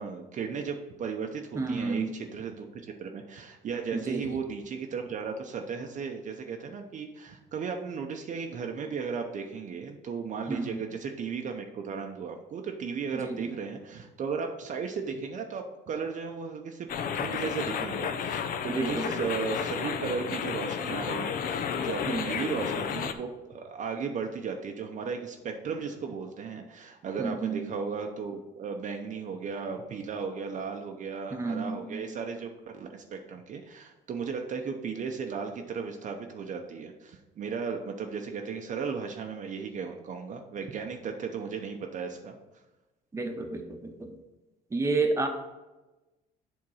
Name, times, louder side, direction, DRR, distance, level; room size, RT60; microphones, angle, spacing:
voice 1, 0.0-42.4, right 5 dB, 50° right, 3 dB, 0.7 m, -35 dB
voice 2, 1.5-2.1 3.9-4.4 10.5-10.8 13.1-13.5 18.7-19.2 22.1-22.4 27.2-27.6 31.3-32.1 43.1-44.1 44.7-45.3, right 3 dB, 15° right, 4 dB, 0.9 m, -31 dB
sound 1, 16.9-23.1, left 7 dB, 60° left, 0.6 m, -32 dB
7.7 x 3.6 x 5.5 m, 1.1 s
cardioid pair, 110°, 17 cm